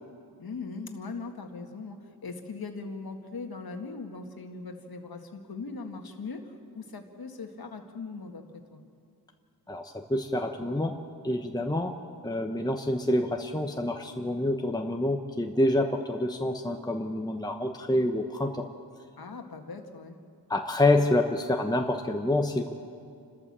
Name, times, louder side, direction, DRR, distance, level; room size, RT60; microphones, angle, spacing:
voice 1, 0.4-8.8 19.2-20.2, left 4 dB, 60° left, 4 dB, 1.9 m, -40 dB
voice 2, 9.7-10.9 11.2-11.9 12.2-18.6 20.5-22.7, left 1 dB, 10° left, 3 dB, 1.1 m, -27 dB
29.5 x 13.0 x 7.5 m, 2.3 s
wide cardioid pair, 80°, 40 cm